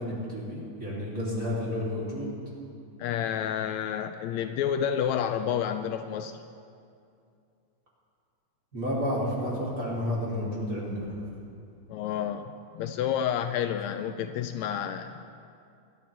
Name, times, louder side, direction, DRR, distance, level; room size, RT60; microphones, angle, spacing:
voice 1, 0.0-2.3 8.7-11.1, left 1 dB, 30° right, -6 dB, 3.1 m, -31 dB
voice 2, 3.0-6.4 11.9-15.2, left 9 dB, 80° left, 8 dB, 1.8 m, -30 dB
25.0 x 11.0 x 3.4 m, 2.4 s
omnidirectional pair, 3.3 m